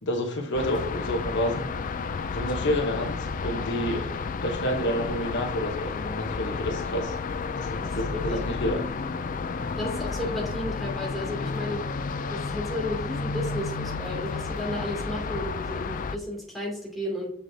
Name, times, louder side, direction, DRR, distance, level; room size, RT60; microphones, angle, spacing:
voice 1, 0.0-1.7 2.3-4.1 4.4-7.1 7.5-8.8, equal, 55° left, 2 dB, 1.0 m, -29 dB
sound 1, 0.5-16.2, left 4 dB, 40° left, 0.4 m, -31 dB
voice 2, 9.8-11.8 12.3-17.3, left 1 dB, ahead, -3 dB, 2.7 m, -33 dB
7.0 x 7.0 x 2.7 m, 0.68 s
head